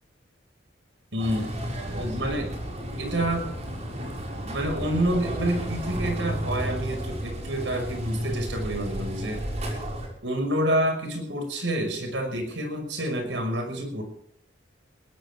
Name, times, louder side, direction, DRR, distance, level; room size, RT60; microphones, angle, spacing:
voice 1, 1.1-2.6 3.0-3.5 4.4-9.4 10.2-14.0, right 1 dB, 80° right, 6 dB, 5.9 m, -28 dB
sound 1, 1.2-10.1, equal, 35° right, 5.8 m, -32 dB
20.5 x 16.5 x 3.7 m, 0.69 s
head